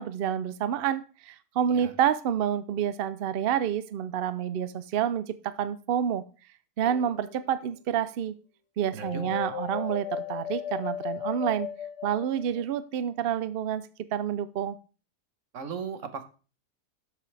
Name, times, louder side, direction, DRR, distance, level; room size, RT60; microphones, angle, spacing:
voice 1, 0.0-6.2 6.8-8.4 8.8-11.7 12.0-14.8, right 9 dB, 70° right, 14 dB, 0.5 m, -28 dB
sound 1, 6.8-7.5 9.0-12.8, left 9 dB, 55° left, 0.9 m, -36 dB
voice 2, 8.9-9.4 15.5-16.2, right 6 dB, 55° right, 9 dB, 1.4 m, -37 dB
12.5 x 6.8 x 3.3 m, 0.35 s
omnidirectional pair, 1.7 m